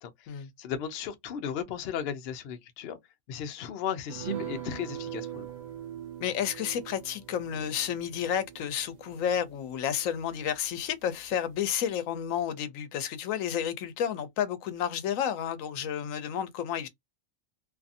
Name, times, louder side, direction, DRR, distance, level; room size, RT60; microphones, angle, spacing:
voice 1, 0.0-3.0 3.3-5.5, left 8 dB, 65° left, 0.7 m, -36 dB
sound 1, 4.1-10.9 11.2-11.3 11.6-11.8, right 9 dB, 40° right, 0.7 m, -41 dB
voice 2, 6.2-16.9, left 9 dB, 80° left, 1.0 m, -31 dB
2.6 x 2.6 x 2.4 m
omnidirectional pair, 1.4 m